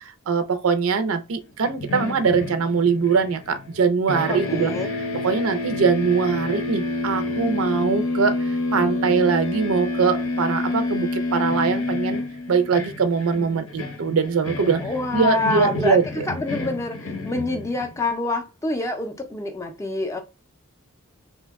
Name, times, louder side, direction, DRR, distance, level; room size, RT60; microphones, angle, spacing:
voice 1, 0.0-4.7 5.2-12.2 12.5-14.8 15.1-16.3, right 5 dB, 80° right, 0.5 m, -22 dB
sound 1, 1.6-3.8 4.1-18.1, left 2 dB, 75° left, 0.7 m, -28 dB
voice 2, 4.3-4.9 14.8-16.0 16.3-20.2, left 2 dB, 15° left, 0.4 m, -27 dB
2.8 x 2.1 x 3.4 m
head